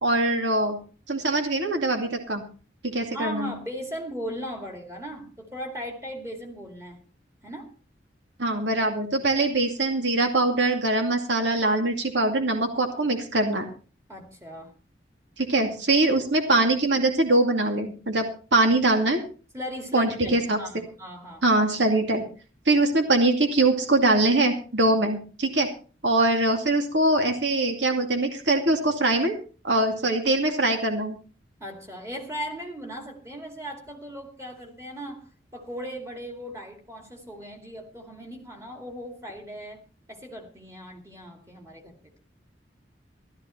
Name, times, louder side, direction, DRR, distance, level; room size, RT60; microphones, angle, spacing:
voice 1, 0.0-0.8 1.1-2.4 2.8-3.5 8.4-13.7 15.4-19.2 19.9-20.6 21.4-22.2 22.7-25.7 26.0-29.4 29.6-31.2, right 2 dB, 75° right, 4 dB, 2.4 m, -23 dB
voice 2, 3.1-7.0 7.4-7.7 14.1-14.7 19.5-21.4 31.6-39.8 40.1-42.1, equal, 15° right, 3 dB, 2.5 m, -37 dB
14.5 x 13.0 x 4.4 m, 0.37 s
head